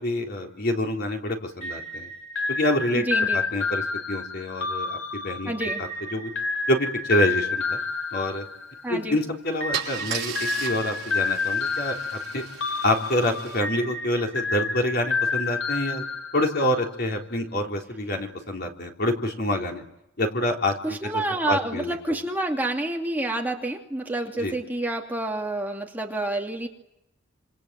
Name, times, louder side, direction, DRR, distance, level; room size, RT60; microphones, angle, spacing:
voice 1, 0.0-2.1 2.5-5.5 5.8-6.3 6.7-7.8 8.1-8.4 8.9-12.4 12.8-16.1 16.3-19.8 20.2-22.2 24.4-24.6, left 1 dB, 50° left, 2 dB, 3.8 m, -27 dB
sound 1, 1.6-9.0 9.6-16.8, left 4 dB, 80° left, 4.4 m, -29 dB
voice 2, 3.1-3.4 5.5-5.8 8.8-9.2 20.8-26.7, right 1 dB, 10° right, 1 dB, 2.7 m, -28 dB
Car / Engine starting / Idling, 9.0-9.2 9.7-13.6, right 8 dB, 55° right, 5.6 m, -36 dB
28.5 x 27.5 x 7.7 m, 0.84 s
head